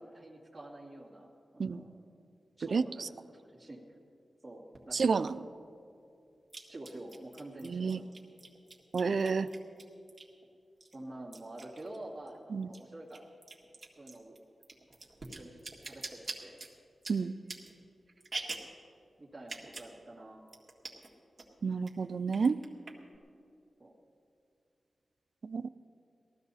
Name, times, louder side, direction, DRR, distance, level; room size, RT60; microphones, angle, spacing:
voice 1, 0.0-1.9 2.6-3.8 4.4-5.5 6.7-8.1 9.1-9.4 10.9-13.3 14.0-14.4 15.2-16.6 19.2-20.4 23.8-23.9, right 1 dB, 15° right, -6 dB, 2.2 m, -48 dB
voice 2, 2.7-3.1 4.9-5.3 7.6-8.0 8.9-9.5 12.5-12.7 17.1-17.3 21.6-22.6 25.4-25.7, right 5 dB, 65° right, 14 dB, 0.4 m, -30 dB
sound 1, 4.7-4.8 6.5-10.4 10.8-12.4 12.6-18.8 19.4-19.9 20.2-20.3 20.5-21.1 21.4-21.9 22.3-23.2, right 3 dB, 30° right, 2.0 m, -45 dB
18.0 x 13.5 x 4.2 m, 2.6 s
wide cardioid pair, 85°, 0 cm